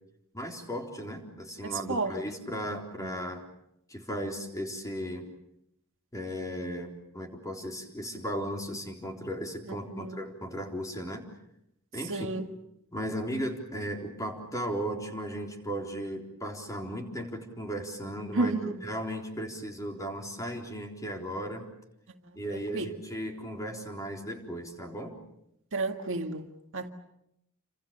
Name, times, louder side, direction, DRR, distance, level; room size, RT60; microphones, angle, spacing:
voice 1, 0.3-3.4 3.9-5.3 6.1-11.2 11.9-12.3 12.9-21.7 22.3-25.2, equal, 15° left, 2 dB, 3.9 m, -36 dB
voice 2, 1.6-2.1 3.0-3.1 9.9-10.2 12.1-12.5 18.3-18.8 22.5-22.9 25.7-26.9, right 2 dB, 60° right, 5 dB, 1.9 m, -32 dB
29.0 x 26.0 x 6.8 m, 0.80 s
head